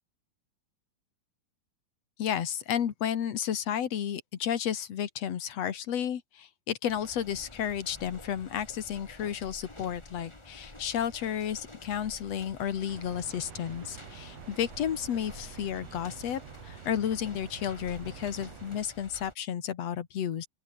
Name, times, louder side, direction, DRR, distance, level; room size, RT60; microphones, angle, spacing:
voice 1, 2.2-20.5, left 9 dB, 55° left, 2.5 m, -32 dB
sound 1, 6.9-19.3, left 2 dB, 10° left, 1.8 m, -50 dB
sound 2, 12.9-18.8, right 8 dB, 50° right, 2.8 m, -47 dB
open air
omnidirectional pair, 4.0 m